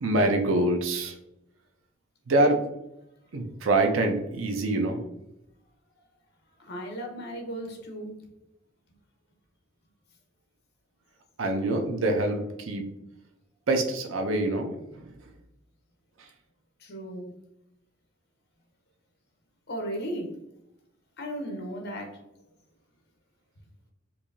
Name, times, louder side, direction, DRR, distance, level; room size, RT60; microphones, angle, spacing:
voice 1, 0.0-1.1 2.3-2.6 3.3-5.0 11.4-12.8 13.7-15.1 16.2-16.3, right 2 dB, 80° right, 4 dB, 0.6 m, -25 dB
voice 2, 6.6-8.1 16.8-17.3 19.7-20.3 21.2-22.2, equal, 55° left, 3 dB, 0.9 m, -35 dB
4.6 x 2.7 x 2.6 m, 0.86 s
head